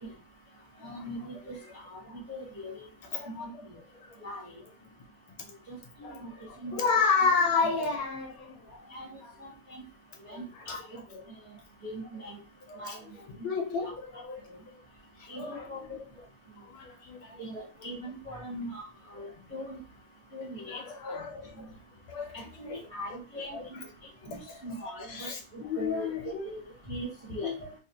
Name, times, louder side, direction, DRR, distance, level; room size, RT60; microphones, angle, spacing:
voice 1, 0.8-1.6 1.8-2.0 2.3-2.9 3.3-3.5 4.2-4.5 5.7-6.3 6.6-6.9 7.2-7.3 8.9-9.8 10.2-11.0 11.8-12.4 12.8-13.0 13.6-13.9 15.3-16.0 17.4-18.8 19.1-19.8 20.3-20.8 22.3-23.8 24.2-26.1 26.4-27.5, equal, 25° right, 0.7 m, -41 dB
voice 2, 6.0-8.9 9.2-9.3 10.3-10.4 12.7-12.9 13.4-14.6 15.2-15.7 16.7-17.4 20.7-21.7 22.1-22.8 23.5-23.6 25.1-26.4 27.4-27.5, left 5 dB, 75° left, 1.5 m, -31 dB
3.9 x 2.7 x 2.7 m
omnidirectional pair, 2.4 m